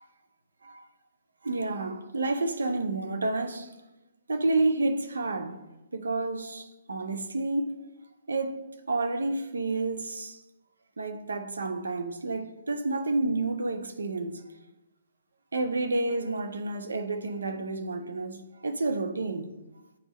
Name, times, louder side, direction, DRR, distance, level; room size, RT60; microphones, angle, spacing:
voice 1, 1.4-3.7 4.3-5.6 5.9-7.8 8.3-10.4 11.0-14.4 15.5-19.5, right 2 dB, 75° right, 0.6 m, -30 dB
9.1 x 3.5 x 3.0 m
figure-of-eight pair, 130°, 0 cm